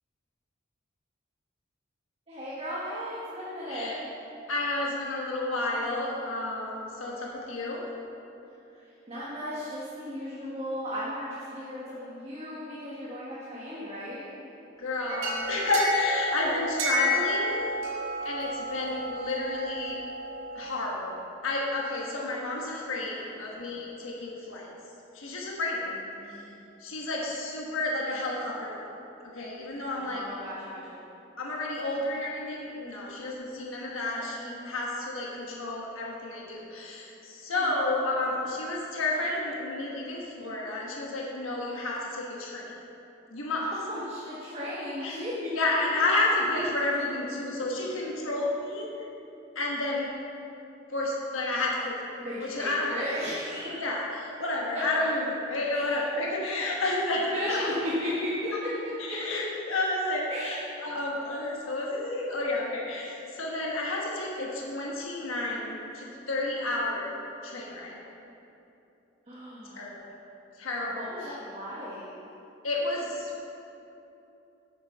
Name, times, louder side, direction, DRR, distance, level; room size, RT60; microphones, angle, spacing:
voice 1, 2.3-4.1 9.1-14.4 23.1-23.3 26.1-26.5 29.9-31.0 37.5-37.6 43.7-45.4 52.2-53.8 55.7-56.0 57.3-57.7 58.0-58.7 59.1-59.4 60.3-60.6 69.3-69.9 70.9-72.1, equal, 30° right, -8 dB, 1.3 m, -36 dB
voice 2, 3.7-4.0 4.5-7.8 14.8-17.6 18.2-20.0 20.5-21.2 21.4-24.7 25.1-26.0 26.8-28.9 29.2-30.2 31.4-42.7 43.3-43.7 45.0-45.2 45.5-49.1 49.5-50.1 50.9-52.0 52.4-53.0 53.8-57.7 58.5-58.6 59.0-67.1 67.4-68.0 69.7-70.1 70.6-71.4 72.6-73.3, left 2 dB, 90° left, -2 dB, 1.3 m, -31 dB
sound 1, 15.1-20.8, left 1 dB, 85° right, 1.8 m, -31 dB
8.5 x 7.1 x 5.5 m, 2.9 s
head